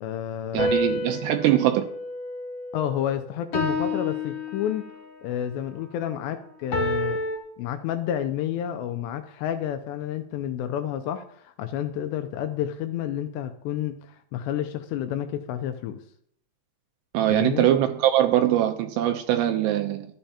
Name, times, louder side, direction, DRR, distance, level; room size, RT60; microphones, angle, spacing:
voice 1, 0.0-0.7 2.7-4.9 5.2-7.2 7.6-16.0 17.3-17.7, left 10 dB, 80° left, 9 dB, 2.6 m, -30 dB
voice 2, 0.5-1.9 17.1-20.1, right 12 dB, 80° right, 6 dB, 2.6 m, -22 dB
sound 1, 0.6-3.0 3.5-5.1 6.7-7.4, left 2 dB, 45° left, 2.4 m, -29 dB
13.5 x 12.5 x 2.8 m, 0.69 s
omnidirectional pair, 5.4 m